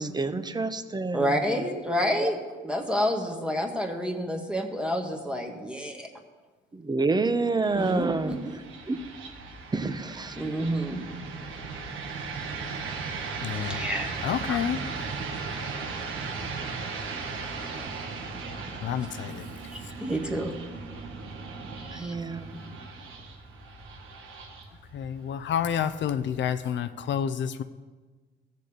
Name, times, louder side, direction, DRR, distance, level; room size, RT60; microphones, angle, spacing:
voice 1, 0.0-1.3 2.2-2.3 6.7-8.4 8.9-9.0 9.7-10.3 21.9-22.6, right 3 dB, 20° right, 10 dB, 0.8 m, -28 dB
voice 2, 1.1-6.1 7.8-8.6 10.3-11.0 13.5-14.1 14.4-14.6 19.7-20.5 21.8-22.1, equal, 5° right, 2 dB, 1.4 m, -29 dB
sound 1, 7.6-26.6, right 4 dB, 85° right, 1.7 m, -37 dB
voice 3, 13.4-13.8 14.2-14.8 18.8-19.4 24.9-27.6, left 8 dB, 65° left, 10 dB, 0.6 m, -29 dB
15.5 x 6.7 x 5.1 m, 1.4 s
cardioid pair, 90°, 20 cm